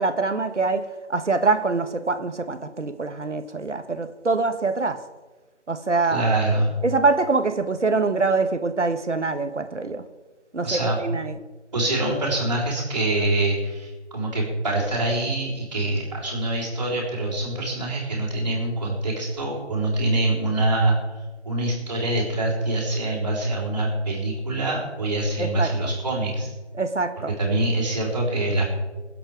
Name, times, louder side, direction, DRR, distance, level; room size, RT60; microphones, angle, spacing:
voice 1, 0.0-5.0 5.7-6.2 6.8-10.0 10.5-11.4 25.4-25.9 26.8-27.3, right 3 dB, 80° right, 1.4 m, -24 dB
voice 2, 6.1-6.7 10.6-11.0 11.7-21.0 21.4-26.5 27.4-28.7, right 2 dB, 25° right, 3.7 m, -24 dB
22.0 x 7.9 x 5.1 m
figure-of-eight pair, 170°, 35 cm